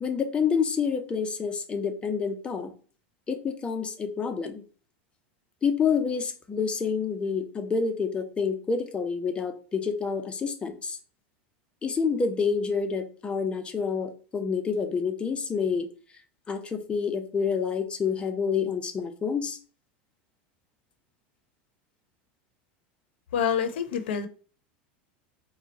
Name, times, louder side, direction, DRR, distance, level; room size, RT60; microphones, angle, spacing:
voice 1, 0.0-2.7 3.3-4.6 5.6-11.0 11.8-15.9 16.5-19.6, left 5 dB, 20° left, 0.8 m, -28 dB
voice 2, 23.3-24.3, left 7 dB, 85° left, 0.9 m, -27 dB
4.4 x 2.4 x 4.2 m
supercardioid pair, 135°, 6 cm